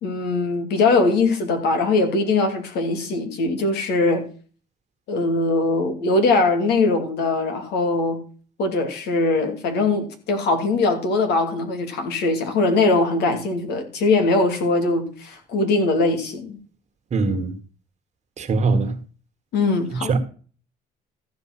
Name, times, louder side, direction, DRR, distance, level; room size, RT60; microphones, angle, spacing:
voice 1, 0.0-4.2 5.1-8.2 8.6-16.6 19.5-20.1, left 3 dB, 80° left, 2.8 m, -21 dB
voice 2, 17.1-17.5 18.4-19.0 20.1-20.2, right 3 dB, 45° right, 1.7 m, -21 dB
14.5 x 5.2 x 6.1 m
cardioid pair, 110°, 17 cm